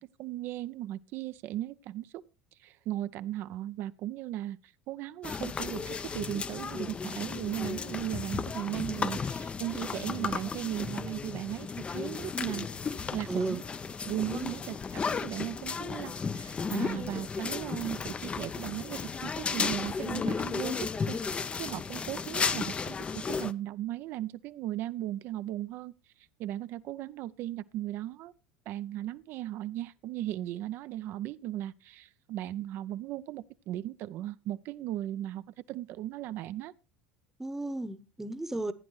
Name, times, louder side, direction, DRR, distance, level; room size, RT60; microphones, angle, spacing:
voice 1, 0.0-2.2 2.6-12.7 13.1-13.6 14.0-14.8 15.1-25.9 26.4-28.3 28.7-36.7, right 13 dB, 50° right, 0.5 m, -37 dB
sound 1, 5.2-23.5, left 5 dB, 25° left, 0.5 m, -34 dB
voice 2, 13.3-13.6 14.3-14.6 37.4-38.7, right 2 dB, 10° right, 0.9 m, -34 dB
15.5 x 9.4 x 3.2 m
hypercardioid pair, 75°, 5 cm